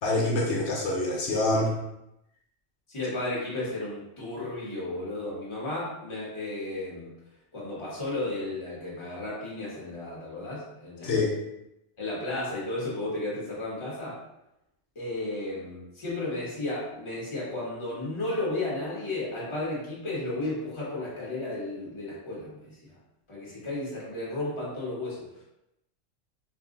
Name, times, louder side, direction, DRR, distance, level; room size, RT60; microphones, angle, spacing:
voice 1, 0.0-1.7 11.0-11.3, left 2 dB, 80° left, -2 dB, 0.9 m, -25 dB
voice 2, 2.9-7.1 7.5-11.1 12.0-14.2 14.9-22.9 23.3-25.4, left 2 dB, 25° left, -6 dB, 0.9 m, -33 dB
2.5 x 2.1 x 3.6 m, 0.86 s
omnidirectional pair, 1.2 m